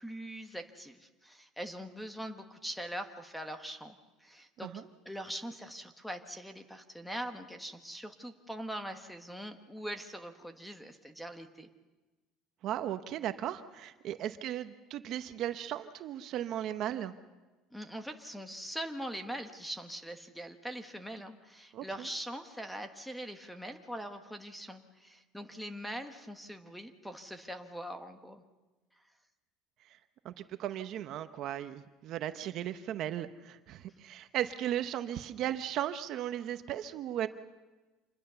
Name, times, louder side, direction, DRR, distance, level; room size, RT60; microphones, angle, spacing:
voice 1, 0.0-4.7 5.0-11.7 17.7-28.4, equal, ahead, 8 dB, 1.2 m, -42 dB
voice 2, 12.6-17.1 21.7-22.1 29.8-30.0 30.2-37.3, right 11 dB, 45° right, 9 dB, 0.9 m, -36 dB
26.5 x 21.0 x 6.9 m, 1.2 s
cardioid pair, 160°, 0 cm